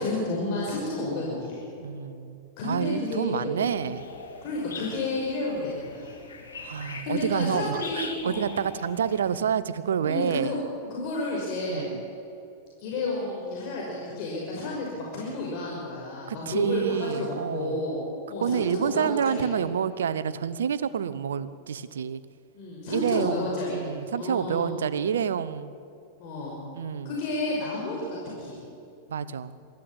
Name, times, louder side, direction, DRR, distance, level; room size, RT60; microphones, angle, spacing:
voice 1, 0.0-1.6 2.6-3.5 3.8-3.9 4.4-6.1 6.8-8.4 10.0-10.6 10.9-11.9 12.8-19.5 22.5-23.8 24.1-24.7 26.2-26.6 27.0-28.6, left 2 dB, 50° left, -3 dB, 5.9 m, -31 dB
voice 2, 1.8-4.1 6.6-10.5 11.7-12.0 16.3-17.8 18.4-22.2 22.9-25.7 26.7-27.1 29.1-29.6, right 8 dB, 75° right, 16 dB, 0.9 m, -28 dB
sound 1, 3.6-9.4, left 4 dB, 80° left, 3.2 m, -42 dB
22.5 x 14.5 x 8.9 m, 2.7 s
hypercardioid pair, 95°, 0 cm